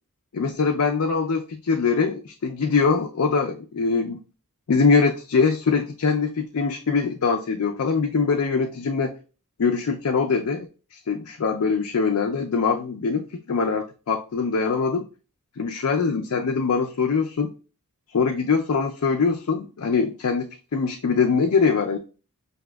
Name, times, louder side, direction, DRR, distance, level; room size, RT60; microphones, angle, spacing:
voice 1, 0.3-4.2 4.7-9.1 9.6-15.1 15.6-17.5 18.1-22.0, left 5 dB, 75° left, 3 dB, 0.5 m, -23 dB
5.9 x 2.8 x 2.2 m, 0.35 s
head